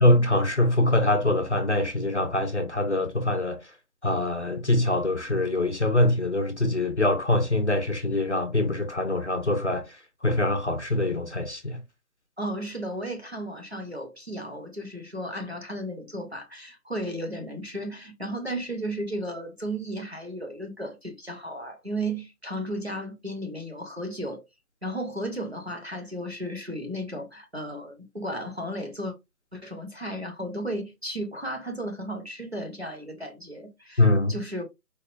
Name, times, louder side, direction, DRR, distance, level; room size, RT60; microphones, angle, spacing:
voice 1, 0.0-3.7 4.0-11.8 34.0-34.4, left 2 dB, 45° left, 0.6 m, -24 dB
voice 2, 12.4-24.4 24.8-29.1 29.5-34.0 34.3-34.6, right 1 dB, 45° right, 0.6 m, -34 dB
4.2 x 2.2 x 2.4 m
figure-of-eight pair, 180°, 48 cm